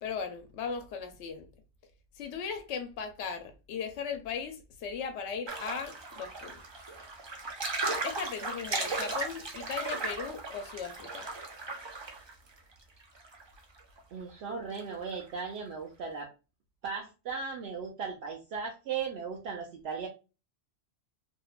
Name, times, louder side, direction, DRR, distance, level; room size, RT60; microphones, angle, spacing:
voice 1, 0.0-1.5 2.2-6.6 8.0-11.3, left 6 dB, 80° left, 0.9 m, -38 dB
sound 1, 5.5-12.3 12.6-12.7 13.0-14.0 14.3-14.4 14.8-14.9 15.1-15.3, right 3 dB, 45° right, 0.3 m, -36 dB
voice 2, 14.1-16.3 16.8-20.1, right 5 dB, 70° right, 0.8 m, -37 dB
2.7 x 2.1 x 2.2 m
omnidirectional pair, 1.2 m